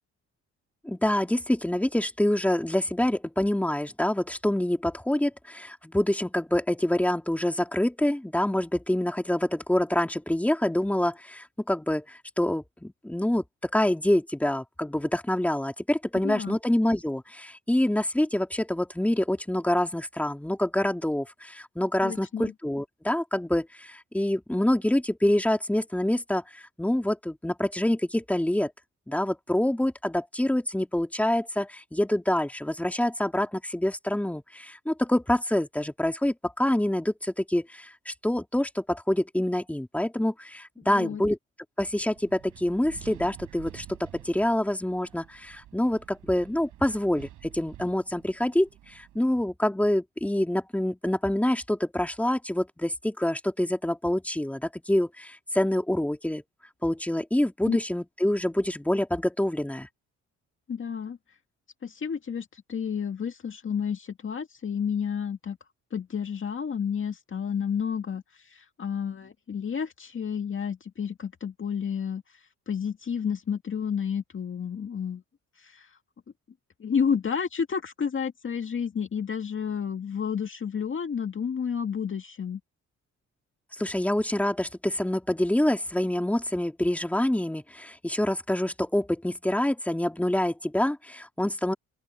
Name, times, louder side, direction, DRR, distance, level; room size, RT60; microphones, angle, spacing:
voice 1, 0.8-13.4 13.7-28.7 29.1-41.4 41.8-56.4 56.8-59.9 83.8-91.7, left 1 dB, 5° left, 3.0 m, -26 dB
voice 2, 16.2-16.6 22.0-22.5 40.8-41.2 57.6-57.8 60.7-61.2 61.8-65.6 65.9-75.2 75.6-76.0 76.8-82.6, left 7 dB, 40° left, 2.1 m, -31 dB
Wind, 41.8-49.2, right 13 dB, 80° right, 7.3 m, -49 dB
open air
cardioid pair, 90°, 30 cm